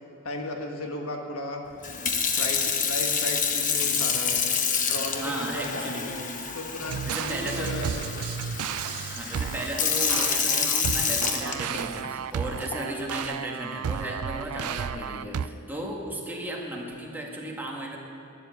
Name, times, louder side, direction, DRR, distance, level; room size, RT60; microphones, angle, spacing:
voice 1, 0.2-1.6 2.3-4.5 4.9-6.3 6.5-8.0, left 2 dB, 65° left, 2 dB, 1.6 m, -35 dB
Sink (filling or washing) / Fill (with liquid), 1.8-12.1 12.7-13.0, left 6 dB, 35° left, 1.1 m, -28 dB
voice 2, 5.2-6.2 6.8-7.8 9.1-18.0, right 1 dB, 10° right, -1 dB, 1.7 m, -35 dB
sound 1, 6.9-15.5, right 8 dB, 75° right, 0.4 m, -33 dB
12.0 x 11.0 x 8.2 m, 2.6 s
head